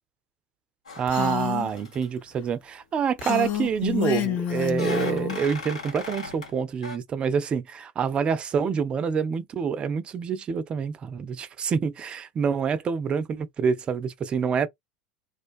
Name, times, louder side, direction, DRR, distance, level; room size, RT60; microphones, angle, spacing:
sound 1, 0.9-1.4 1.7-2.1 3.4-4.0 4.7-6.6 6.8-7.0, left 3 dB, 80° left, 1.1 m, -38 dB
voice 1, 1.0-14.7, right 6 dB, 30° right, 0.4 m, -27 dB
Female speech woman speaking, 1.1-1.7 3.2-5.5, left 10 dB, 45° left, 0.6 m, -28 dB
2.4 x 2.2 x 2.4 m
figure-of-eight pair, 80°, 3 cm